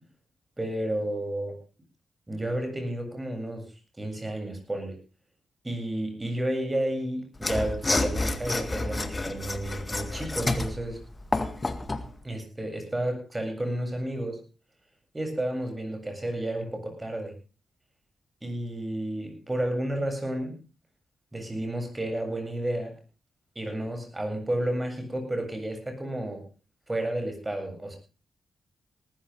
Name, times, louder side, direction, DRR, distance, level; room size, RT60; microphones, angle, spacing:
voice 1, 0.6-1.6 2.3-3.7 4.0-5.0 5.6-11.0 12.2-14.4 15.1-17.3 18.4-20.5 21.3-22.9 23.5-26.4 26.9-28.0, right 1 dB, 20° right, 5 dB, 7.9 m, -31 dB
Mechanisms / Sawing, 7.4-12.1, left 2 dB, 30° left, 1.9 m, -29 dB
19.0 x 14.0 x 3.7 m, 0.33 s
cardioid pair, 55°, 0 cm